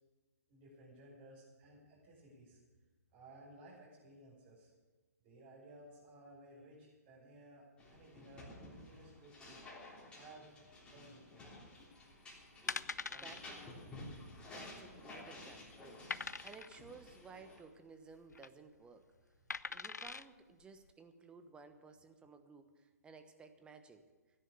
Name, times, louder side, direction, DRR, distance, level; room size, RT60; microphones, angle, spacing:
voice 1, 0.5-2.6 3.1-4.7 5.2-9.6 10.1-10.6 10.9-11.4 13.1-13.3, right 1 dB, 35° right, -8 dB, 5.6 m, -58 dB
sound 1, 7.8-17.6, left 2 dB, 10° left, 3.4 m, -53 dB
sound 2, 12.2-12.3 12.7-13.4 13.7-13.9 14.2-14.3 14.8-15.3 16.1-16.8 18.1-18.5 19.5-20.2 20.8-20.9, left 4 dB, 90° left, 0.5 m, -42 dB
voice 2, 13.1-13.6 14.5-19.0 19.7-24.0, right 4 dB, 10° right, 7 dB, 1.1 m, -56 dB
16.0 x 10.0 x 6.9 m, 1.3 s
figure-of-eight pair, 130°, 9 cm